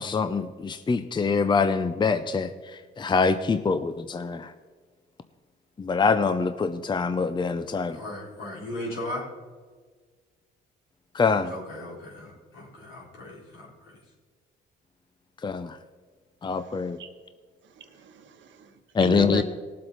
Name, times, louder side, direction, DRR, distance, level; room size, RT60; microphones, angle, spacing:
voice 1, 0.0-4.5 5.8-8.0 11.1-11.5 15.4-15.8 16.4-17.0 18.9-19.4, left 4 dB, 25° left, 10 dB, 0.6 m, -25 dB
voice 2, 7.9-9.3 11.5-14.0, left 1 dB, 80° left, -4 dB, 4.2 m, -37 dB
voice 3, 16.6-17.1 17.6-19.4, right 5 dB, 70° right, 6 dB, 1.3 m, -37 dB
18.5 x 7.7 x 4.0 m, 1.5 s
cardioid pair, 90°, 20 cm